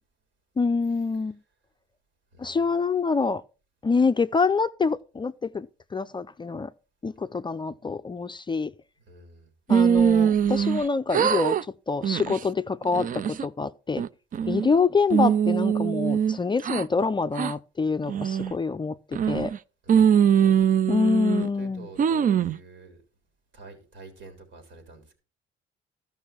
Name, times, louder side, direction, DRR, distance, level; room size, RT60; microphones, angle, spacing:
voice 1, 0.6-1.4 2.4-3.4 3.8-6.7 7.0-8.7 9.7-11.6 11.9-14.0 14.5-19.5 20.9-21.9, left 4 dB, 25° left, 0.4 m, -26 dB
voice 2, 9.1-9.5 14.3-14.6 19.8-20.4 21.6-23.0 23.5-25.1, right 3 dB, 70° right, 3.5 m, -48 dB
sound 1, 9.7-10.8 11.1-11.6 12.0-12.4 12.9-13.5 14.0-14.7 15.1-16.8 17.4-17.5 18.1-18.5 19.1-19.6 19.9-21.5 22.0-22.6, right 8 dB, 45° right, 0.4 m, -22 dB
13.0 x 5.4 x 5.8 m
cardioid pair, 90°, 20 cm